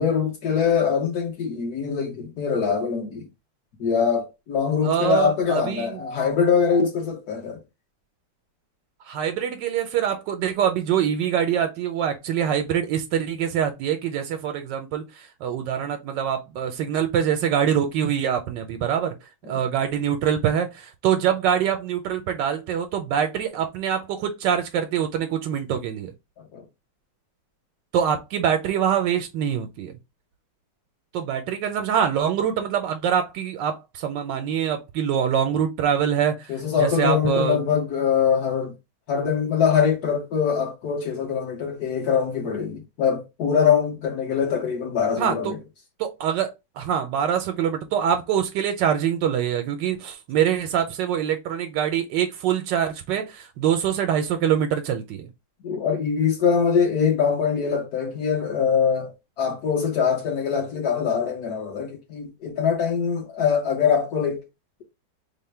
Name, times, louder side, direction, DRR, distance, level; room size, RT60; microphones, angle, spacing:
voice 1, 0.0-3.3 3.8-7.6 19.4-19.6 26.5-26.6 36.5-38.7 39.1-45.6 55.6-64.4, left 6 dB, 65° left, 1.3 m, -23 dB
voice 2, 4.8-6.0 9.1-19.1 19.5-26.1 27.9-29.9 31.1-36.5 36.8-37.6 45.2-45.5 46.0-55.3, right 8 dB, 80° right, 1.2 m, -24 dB
3.4 x 2.1 x 4.2 m
omnidirectional pair, 1.9 m